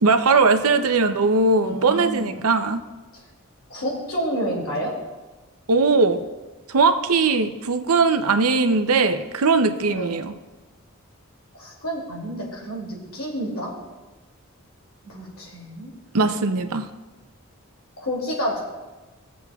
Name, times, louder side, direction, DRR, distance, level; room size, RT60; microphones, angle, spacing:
voice 1, 0.0-2.8 5.7-6.2 6.7-10.3 16.1-16.9, right 4 dB, 85° right, 8 dB, 0.7 m, -19 dB
voice 2, 1.6-2.4 3.1-3.2 3.7-4.9 9.9-10.1 11.6-13.7 15.0-15.9 18.0-18.6, equal, 75° left, -3 dB, 2.6 m, -29 dB
19.0 x 7.2 x 2.4 m, 1.2 s
head